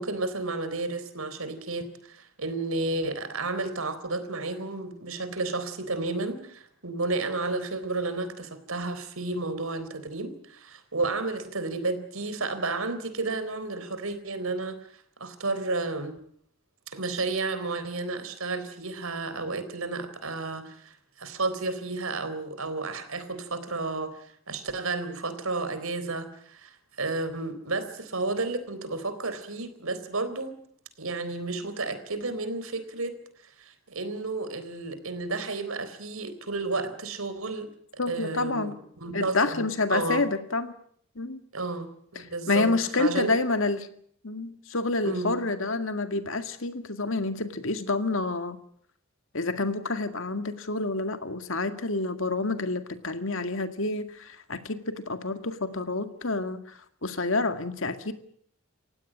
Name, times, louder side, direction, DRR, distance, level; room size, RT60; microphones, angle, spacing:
voice 1, 0.0-14.9 15.2-16.2 16.9-30.5 31.0-33.2 33.4-37.7 38.1-40.2 41.5-42.7 43.0-43.3 45.0-45.4, right 3 dB, 80° right, 11 dB, 3.9 m, -32 dB
voice 2, 38.0-38.8 39.1-40.8 41.2-41.4 42.2-43.9 44.2-48.6 49.3-58.1, left 3 dB, 70° left, 9 dB, 2.1 m, -28 dB
29.0 x 16.0 x 8.7 m, 0.64 s
head